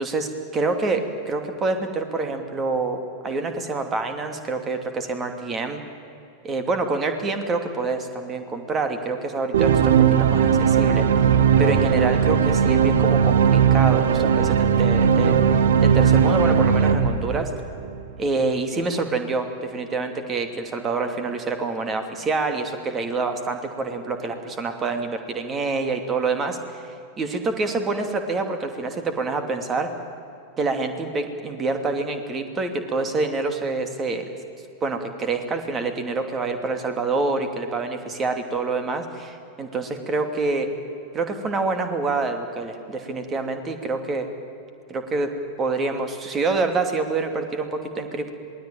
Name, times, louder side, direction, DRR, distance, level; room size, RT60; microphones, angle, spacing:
voice 1, 0.0-5.8 6.4-11.3 11.6-17.5 18.2-29.9 30.6-34.3 34.8-40.7 41.1-44.3 44.9-45.3 45.6-48.3, right 3 dB, 25° right, 7 dB, 2.7 m, -26 dB
sound 1, 9.5-18.0, right 7 dB, 60° right, 1.4 m, -18 dB
27.0 x 20.0 x 9.1 m, 2.7 s
figure-of-eight pair, 90°, 0 cm